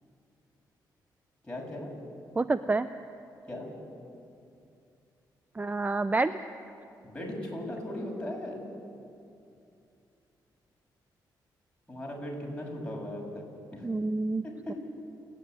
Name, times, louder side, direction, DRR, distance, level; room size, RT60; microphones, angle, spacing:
voice 1, 1.4-1.9 3.5-3.7 7.0-8.7 11.9-13.4 13.7-13.9 14.4-14.8, left 1 dB, 10° left, -2 dB, 6.9 m, -37 dB
voice 2, 2.4-2.9 5.5-6.3 13.8-14.4 14.7-14.8, right 3 dB, 20° right, 12 dB, 0.5 m, -28 dB
29.0 x 10.0 x 9.6 m, 2.6 s
cardioid pair, 75°, 8 cm